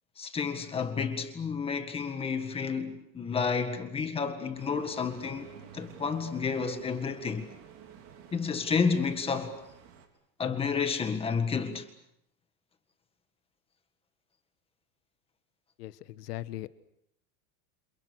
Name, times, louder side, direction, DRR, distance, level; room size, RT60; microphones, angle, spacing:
voice 1, 0.2-5.5 5.7-7.5 8.3-9.6 10.4-11.9, left 5 dB, 10° left, 1.8 m, -30 dB
sound 1, 4.5-10.1, right 8 dB, 40° right, 4.4 m, -51 dB
voice 2, 15.8-16.7, left 15 dB, 85° left, 1.5 m, -39 dB
29.5 x 28.0 x 6.5 m
supercardioid pair, 180°, 46 cm